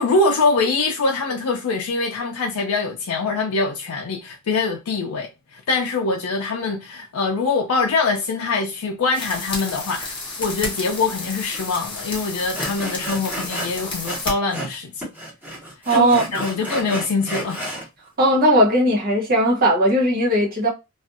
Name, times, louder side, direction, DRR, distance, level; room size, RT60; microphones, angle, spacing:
voice 1, 0.0-15.1 15.9-17.6, left 3 dB, 80° left, 0.4 m, -23 dB
sound 1, 9.1-14.3, left 3 dB, 20° left, 0.8 m, -32 dB
Sawing, 11.5-11.6 11.9-12.1 12.5-14.8 15.0-17.9, right 1 dB, 10° right, 1.1 m, -32 dB
voice 2, 15.9-16.4 18.2-20.7, right 1 dB, 45° right, 0.9 m, -18 dB
2.5 x 2.3 x 2.5 m
head